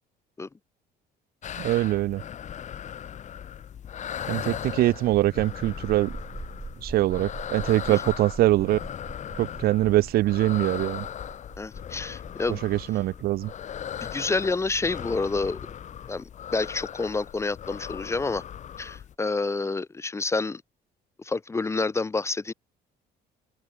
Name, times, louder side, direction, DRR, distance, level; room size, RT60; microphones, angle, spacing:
sound 1, 1.4-19.1, left 9 dB, 45° left, 1.1 m, -38 dB
voice 1, 1.6-2.2 4.3-6.1 6.8-8.8 9.4-11.0 12.6-13.5, right 16 dB, 65° right, 0.5 m, -23 dB
sound 2, 4.6-17.9, right 3 dB, 15° right, 1.1 m, -44 dB
voice 2, 11.6-12.6 14.0-15.6 16.1-18.4 18.8-20.6 21.2-22.5, left 3 dB, 15° left, 0.5 m, -28 dB
cardioid pair, 110°, 17 cm